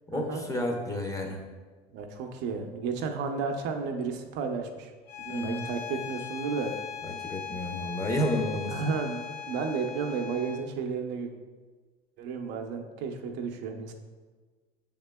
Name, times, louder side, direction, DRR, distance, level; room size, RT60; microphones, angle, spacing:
voice 1, 0.1-1.4 5.3-5.6 7.1-8.7, left 1 dB, 15° left, 2 dB, 0.7 m, -31 dB
voice 2, 1.9-4.9 5.2-6.7 8.7-11.3 12.2-13.9, right 5 dB, 60° right, 4 dB, 0.6 m, -33 dB
Bowed string instrument, 5.1-10.7, left 7 dB, 85° left, 0.5 m, -39 dB
6.5 x 3.6 x 2.2 m, 1.4 s
supercardioid pair, 105°, 21 cm